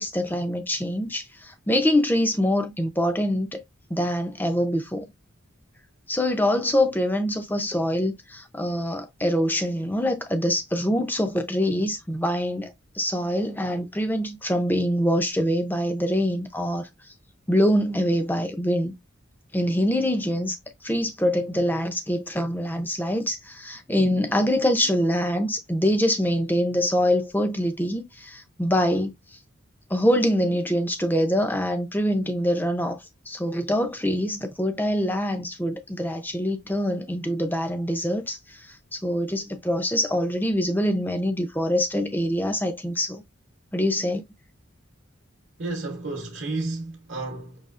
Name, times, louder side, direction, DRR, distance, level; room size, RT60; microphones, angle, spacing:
voice 1, 0.0-3.6 3.9-5.1 6.1-16.9 17.5-18.9 19.5-20.6 20.8-29.1 29.9-33.0 33.3-43.2 43.7-44.2, equal, 10° left, 0.6 m, -24 dB
voice 2, 45.6-47.6, right 2 dB, 60° right, 1.0 m, -31 dB
5.5 x 2.9 x 2.4 m
head